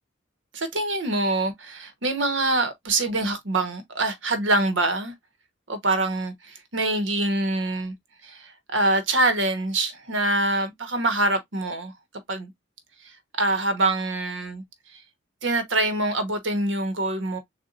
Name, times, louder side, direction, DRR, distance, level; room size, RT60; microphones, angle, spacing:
voice 1, 0.5-5.1 5.7-7.9 8.2-11.9 12.3-12.5 13.0-14.6 14.9-15.0 15.4-17.4, right 2 dB, 80° right, 1.2 m, -25 dB
6.8 x 2.5 x 2.5 m
head